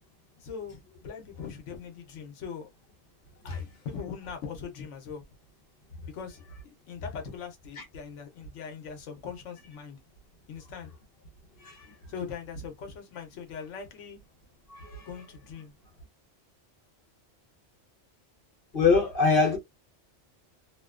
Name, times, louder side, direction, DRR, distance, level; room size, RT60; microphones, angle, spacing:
voice 1, 0.4-2.7 3.4-5.2 6.1-10.0 10.5-10.9 12.1-14.2 15.1-15.7, left 6 dB, 85° left, 1.0 m, -41 dB
voice 2, 11.6-11.9 14.7-15.1 18.7-19.6, left 4 dB, 55° left, 0.9 m, -24 dB
2.8 x 2.1 x 2.3 m
omnidirectional pair, 1.2 m